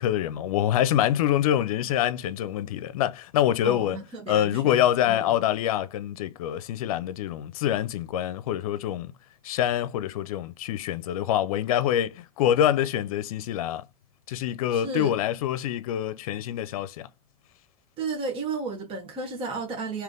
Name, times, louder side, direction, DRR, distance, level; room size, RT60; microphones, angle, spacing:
voice 1, 0.0-4.0 4.3-9.1 9.4-13.8 14.3-17.1, left 11 dB, 75° left, 0.6 m, -25 dB
voice 2, 3.6-5.4 14.7-15.2 18.0-20.0, right 4 dB, 30° right, 1.4 m, -33 dB
3.4 x 3.0 x 3.8 m
supercardioid pair, 120°, 18 cm